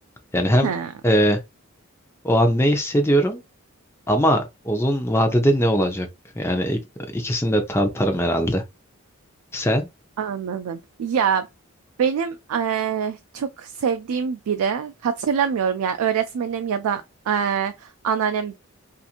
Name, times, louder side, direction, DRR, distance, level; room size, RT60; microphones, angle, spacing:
voice 1, 0.3-0.7 1.0-1.4 2.2-3.4 4.1-6.1 6.4-6.8 7.1-8.6 9.5-9.9, equal, 10° left, 0.5 m, -20 dB
voice 2, 10.2-11.5 12.0-18.6, right 7 dB, 90° right, 0.3 m, -24 dB
2.8 x 2.5 x 2.4 m
head